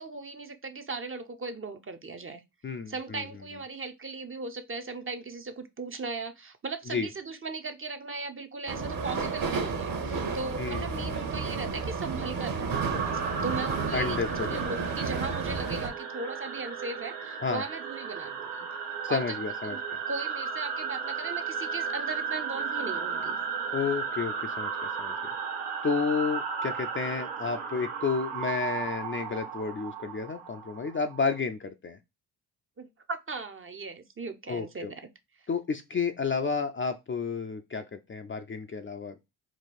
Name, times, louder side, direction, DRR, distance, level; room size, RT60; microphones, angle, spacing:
voice 1, 0.0-2.4 2.9-18.7 19.1-19.2 19.6-19.8 20.1-23.4 32.8-35.0 35.4-35.5, right 4 dB, 25° right, 0.6 m, -38 dB
voice 2, 2.6-3.2 6.9-7.1 10.6-11.2 13.9-14.8 17.4-17.6 19.0-20.0 23.7-25.1 25.8-32.0 34.5-34.9 35.5-39.2, left 5 dB, 25° left, 0.5 m, -31 dB
sound 1, 8.7-15.9, right 4 dB, 45° right, 1.1 m, -32 dB
sound 2, 12.7-31.4, right 6 dB, 80° right, 1.1 m, -35 dB
4.0 x 2.3 x 4.1 m
hypercardioid pair, 55°, 49 cm